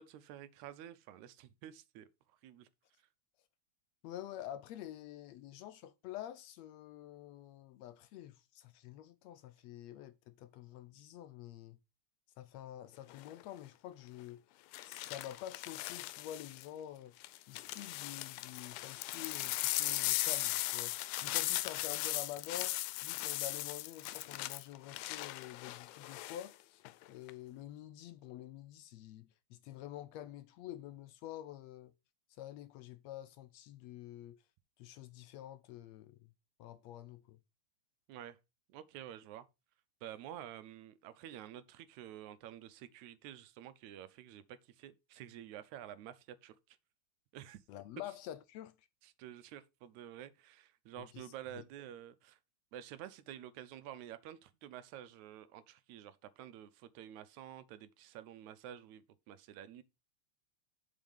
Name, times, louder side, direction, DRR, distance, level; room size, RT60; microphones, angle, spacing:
voice 1, 0.0-2.1 2.4-2.7 38.1-38.4 38.7-39.5 40.0-46.8 47.3-47.6 49.0-52.4 52.7-59.8, right 11 dB, 80° right, 2.1 m, -50 dB
voice 2, 4.0-11.8 12.4-14.4 14.8-17.1 17.5-31.9 32.4-34.4 34.8-36.3 36.6-37.4 47.7-48.7 51.0-51.6, left 12 dB, 75° left, 1.7 m, -48 dB
sound 1, 13.1-13.4 14.7-16.7 17.2-26.5 26.8-27.3, left 17 dB, 90° left, 2.0 m, -38 dB
7.4 x 5.0 x 5.4 m
omnidirectional pair, 3.3 m